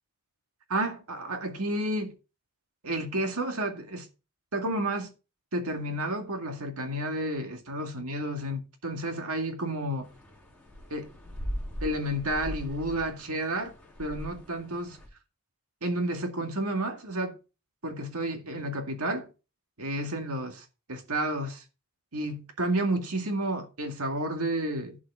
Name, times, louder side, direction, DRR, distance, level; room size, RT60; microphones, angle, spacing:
voice 1, 0.7-2.1 2.8-4.1 4.5-5.1 5.5-10.1 10.9-11.1 11.8-13.7 14.0-15.0 15.8-17.4 17.8-19.3 19.8-21.6 22.1-25.0, right 1 dB, 75° right, 2.2 m, -31 dB
sound 1, 10.0-15.1, equal, 5° left, 3.7 m, -40 dB
11.5 x 6.3 x 4.9 m
head